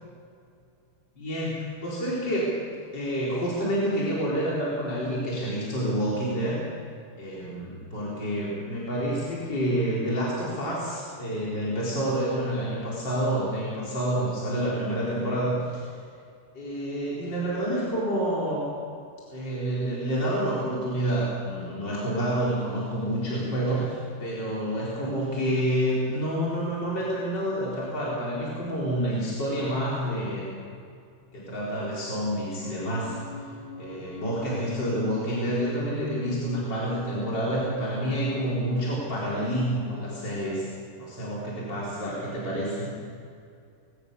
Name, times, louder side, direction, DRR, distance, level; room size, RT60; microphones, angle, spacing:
voice 1, 1.2-2.5 2.9-6.6 7.2-15.9 16.5-18.7 19.3-30.5 31.3-33.1 33.8-40.7 41.0-43.0, right 1 dB, 50° left, -6 dB, 4.8 m, -28 dB
sound 1, 32.6-40.6, equal, 25° left, 2.6 m, -43 dB
22.5 x 17.0 x 6.8 m, 2.4 s
omnidirectional pair, 2.4 m